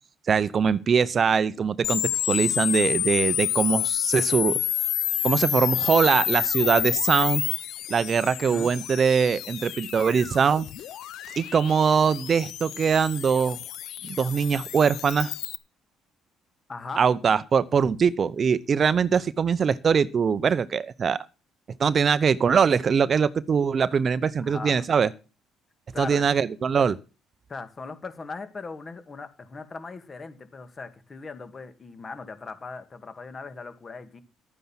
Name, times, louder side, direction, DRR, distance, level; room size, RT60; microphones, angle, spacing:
voice 1, 0.3-4.6 5.2-7.4 7.9-10.7 11.4-13.6 14.0-15.3 17.0-21.3 21.8-25.1 26.0-27.0, right 6 dB, 45° right, 0.7 m, -22 dB
sound 1, 1.8-15.6, left 12 dB, 70° left, 0.8 m, -29 dB
voice 2, 16.7-17.0 24.4-24.9 25.9-26.3 27.5-34.2, left 4 dB, 35° left, 2.3 m, -39 dB
12.0 x 9.4 x 5.8 m
supercardioid pair, 80°, 0 cm